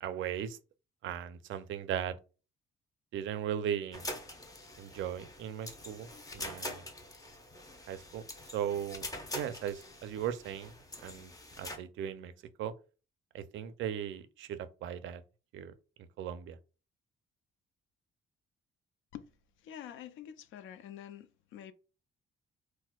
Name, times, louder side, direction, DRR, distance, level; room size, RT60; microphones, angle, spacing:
voice 1, 0.0-0.6 1.0-2.2 3.1-4.1 4.8-6.1 6.3-6.8 7.9-8.2 8.5-9.1 9.3-10.8 11.0-11.3 11.6-12.3 12.6-12.7 13.3-15.2 15.5-15.7 16.2-16.6, right 9 dB, 75° right, 0.4 m, -37 dB
sound 1, 3.9-11.8, left 1 dB, 15° left, 0.6 m, -44 dB
voice 2, 19.6-21.7, left 10 dB, 85° left, 0.4 m, -47 dB
4.2 x 2.1 x 2.2 m
cardioid pair, 90°, 20 cm